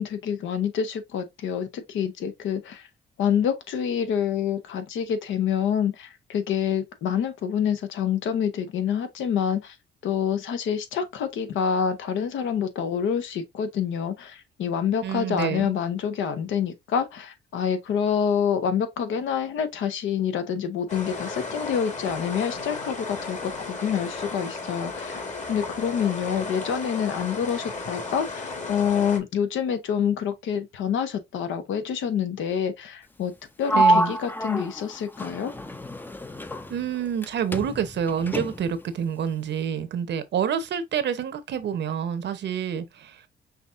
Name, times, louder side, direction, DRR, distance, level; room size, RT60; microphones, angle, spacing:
voice 1, 0.0-2.8 3.2-9.7 10.0-25.2 25.5-33.3 33.6-35.5, left 8 dB, 80° left, 0.9 m, -27 dB
voice 2, 15.0-15.7 33.7-34.1 36.7-43.1, right 8 dB, 60° right, 0.8 m, -28 dB
sound 1, 20.9-29.2, left 3 dB, 35° left, 1.5 m, -34 dB
Sliding door, 33.7-37.3 37.5-38.8, right 1 dB, 10° left, 0.5 m, -26 dB
5.8 x 2.8 x 2.5 m
cardioid pair, 90°, 20 cm